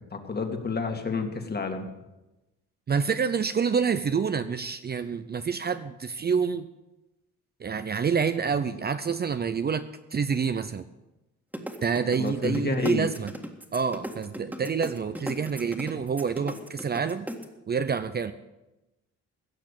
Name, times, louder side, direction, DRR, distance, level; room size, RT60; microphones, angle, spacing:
voice 1, 0.1-1.9 12.2-13.1, left 4 dB, 35° left, 5 dB, 2.1 m, -29 dB
voice 2, 2.9-6.7 7.6-9.8 10.1-10.8 11.8-13.3 13.7-17.3 17.7-18.3, right 6 dB, 35° right, 11 dB, 0.6 m, -27 dB
sound 1, 11.5-17.5, right 1 dB, 5° right, 1.8 m, -36 dB
16.5 x 6.6 x 8.3 m, 1.0 s
cardioid pair, 90°, 30 cm